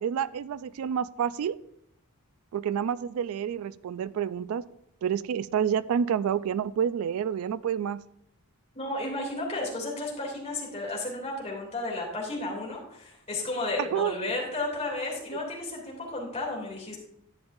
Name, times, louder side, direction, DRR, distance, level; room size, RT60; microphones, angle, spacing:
voice 1, 0.0-1.6 2.5-4.6 5.0-8.0 13.8-14.2, right 8 dB, 70° right, 18 dB, 0.3 m, -28 dB
voice 2, 8.7-17.0, left 2 dB, 30° left, -2 dB, 2.8 m, -33 dB
11.5 x 8.7 x 2.6 m, 0.73 s
head